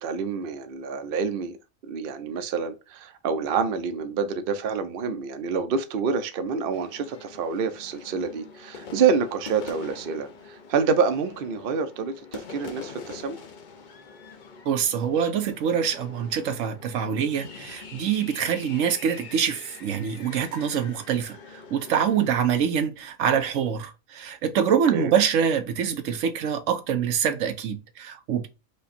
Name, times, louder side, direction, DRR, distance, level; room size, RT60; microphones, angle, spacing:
voice 1, 0.0-1.6 1.8-13.4 24.9-25.1, right 5 dB, 55° right, 0.7 m, -27 dB
sound 1, 6.7-22.6, left 5 dB, 45° left, 0.7 m, -44 dB
voice 2, 14.7-21.4 21.7-28.5, right 8 dB, 75° right, 1.0 m, -25 dB
5.1 x 2.3 x 4.1 m
omnidirectional pair, 1.3 m